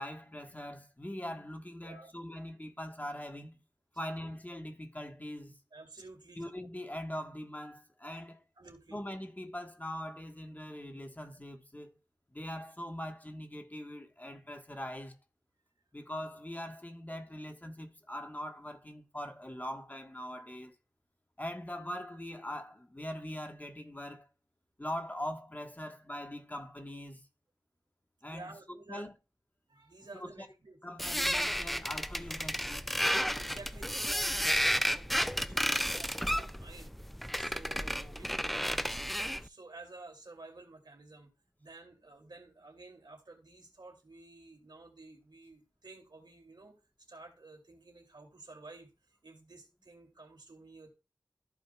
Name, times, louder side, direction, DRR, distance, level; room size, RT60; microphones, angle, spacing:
voice 1, 0.0-3.6 4.0-5.6 6.3-8.4 8.9-12.0 12.3-15.2 15.9-20.7 21.4-24.3 24.8-27.2 28.2-29.1 30.1-30.5 30.8-32.9, left 1 dB, 20° left, 1.4 m, -42 dB
voice 2, 1.8-2.1 5.7-6.5 8.6-9.0 28.3-29.1 29.7-30.8 31.8-31.9 33.3-36.9 37.4-41.3 41.6-46.7 47.1-50.9, right 3 dB, 80° right, 2.8 m, -52 dB
chair squeek, 31.0-39.5, equal, ahead, 0.4 m, -32 dB
14.5 x 5.2 x 2.4 m
wide cardioid pair, 40°, 7 cm